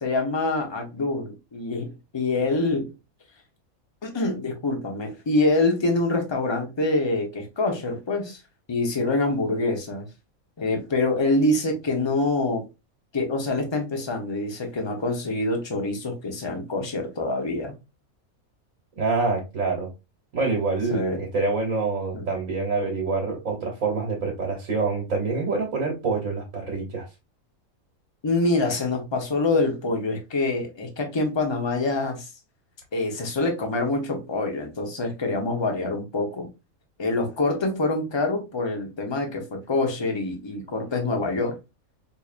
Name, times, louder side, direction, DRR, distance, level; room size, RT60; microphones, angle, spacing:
voice 1, 0.0-2.9 4.0-8.4 8.7-10.1 10.6-12.6 13.1-17.7 20.9-21.2 22.1-22.3 28.2-32.3 32.9-36.5 37.0-41.5, left 2 dB, 25° left, 0.7 m, -25 dB
voice 2, 19.0-19.9 20.3-27.1, right 3 dB, 70° right, 1.4 m, -26 dB
4.7 x 2.7 x 2.4 m
omnidirectional pair, 1.5 m